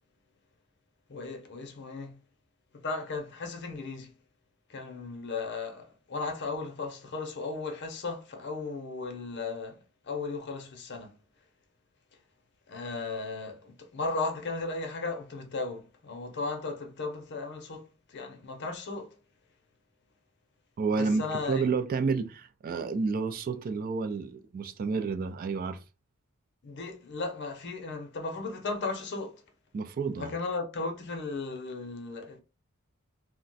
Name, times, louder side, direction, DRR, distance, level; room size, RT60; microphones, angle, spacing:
voice 1, 1.1-2.2 2.7-4.1 4.7-11.2 12.7-19.2 20.9-21.7 26.6-29.4 30.2-32.4, left 3 dB, 55° left, 0.7 m, -36 dB
voice 2, 20.8-25.8 29.7-30.3, right 4 dB, 40° right, 0.3 m, -30 dB
2.4 x 2.2 x 3.9 m
head